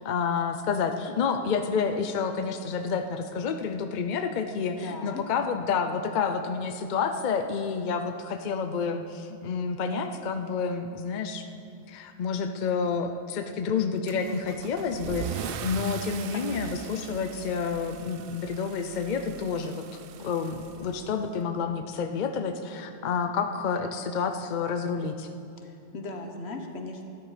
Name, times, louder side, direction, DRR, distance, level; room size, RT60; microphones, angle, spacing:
voice 1, 0.0-11.4 11.9-19.8 20.2-25.3, left 5 dB, 50° left, 6 dB, 0.7 m, -29 dB
voice 2, 4.8-5.2 16.3-16.7 25.6-27.1, left 2 dB, 80° left, 4 dB, 1.4 m, -38 dB
Car / Engine starting / Accelerating revving vroom, 14.1-21.4, right 9 dB, 65° right, 0.7 m, -40 dB
13.0 x 11.0 x 4.9 m, 2.6 s
omnidirectional pair, 1.1 m